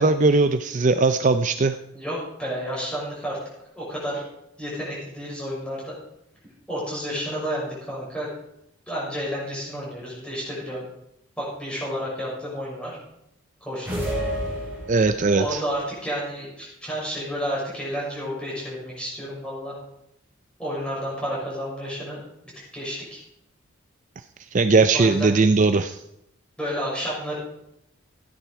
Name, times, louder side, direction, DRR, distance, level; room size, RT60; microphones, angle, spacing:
voice 1, 0.0-1.8 14.9-15.6 24.5-26.0, right 3 dB, 35° right, 9 dB, 0.4 m, -19 dB
voice 2, 1.9-3.4 3.7-4.2 4.6-5.9 6.7-8.3 8.9-10.8 11.4-13.0 13.6-14.0 15.3-19.7 20.6-22.2 22.7-23.2 24.9-25.3 26.6-27.4, equal, 5° left, -6 dB, 6.2 m, -31 dB
sound 1, 13.8-15.4, equal, 10° right, 4.0 m, -29 dB
15.5 x 10.0 x 4.8 m, 0.80 s
head